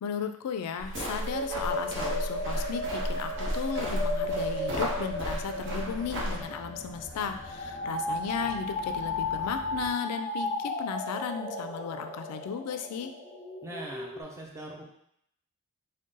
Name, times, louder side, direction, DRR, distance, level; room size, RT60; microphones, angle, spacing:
voice 1, 0.0-13.1, left 6 dB, 85° left, 8 dB, 0.3 m, -35 dB
sound 1, 0.8-6.4, equal, 55° right, 0.9 m, -34 dB
sound 2, 0.9-14.2, left 1 dB, 25° left, 0.8 m, -35 dB
sound 3, 4.9-9.9, left 1 dB, 5° left, 1.4 m, -47 dB
voice 2, 13.6-14.8, right 1 dB, 15° right, -2 dB, 0.6 m, -41 dB
3.8 x 2.2 x 3.8 m, 0.73 s
head